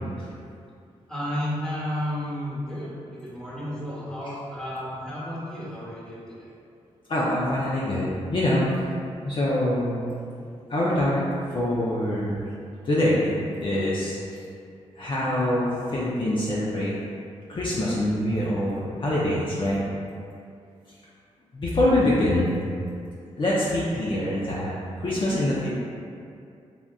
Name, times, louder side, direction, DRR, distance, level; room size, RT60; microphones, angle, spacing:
voice 1, 1.1-6.5 15.1-15.5, equal, 5° left, -8 dB, 1.0 m, -32 dB
voice 2, 7.1-8.7 9.2-10.0 10.7-11.2 11.5-12.4 12.8-14.2 15.0-16.9 17.5-19.8 21.5-22.6 23.4-25.7, left 1 dB, 45° left, -7 dB, 0.5 m, -24 dB
3.5 x 2.5 x 2.3 m, 2.4 s
cardioid pair, 60°, 12 cm